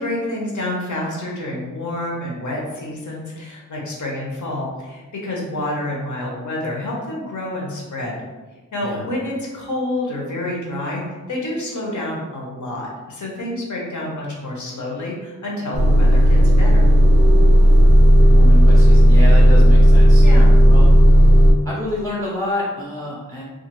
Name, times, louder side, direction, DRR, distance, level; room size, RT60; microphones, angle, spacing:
voice 1, 0.0-8.2 8.7-16.9 20.2-20.5, left 1 dB, 60° left, -3 dB, 0.8 m, -28 dB
Motor vehicle (road) / Engine starting / Idling, 15.7-21.5, equal, 45° right, 0.4 m, -11 dB
voice 2, 18.3-20.2 20.7-20.9 21.6-23.4, left 1 dB, 10° left, -5 dB, 0.5 m, -28 dB
2.4 x 2.3 x 3.0 m, 1.2 s
wide cardioid pair, 95°, 33 cm